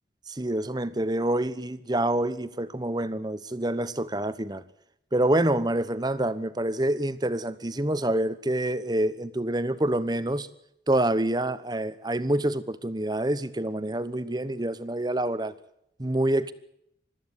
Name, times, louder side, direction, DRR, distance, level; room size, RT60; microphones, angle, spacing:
voice 1, 0.3-4.6 5.1-10.5 10.9-15.5 16.0-16.5, right 1 dB, 20° right, 1.0 m, -27 dB
22.5 x 14.0 x 9.6 m
head